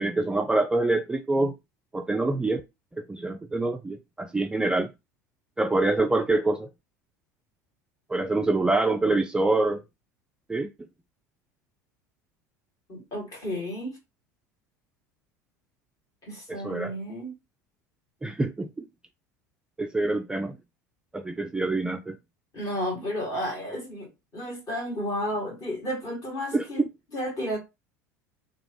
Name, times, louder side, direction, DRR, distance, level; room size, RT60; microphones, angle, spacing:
voice 1, 0.0-1.5 1.9-2.6 3.0-4.9 5.6-6.7 8.1-9.8 10.5-10.7 16.5-16.9 18.2-18.9 19.8-20.6 21.1-22.2 26.5-26.7, right 2 dB, 10° right, 0.3 m, -25 dB
voice 2, 12.9-14.0 16.2-17.3 22.5-24.1 24.3-26.8 27.1-27.6, equal, 40° left, 1.9 m, -32 dB
2.9 x 2.3 x 2.9 m
figure-of-eight pair, 75°, 9 cm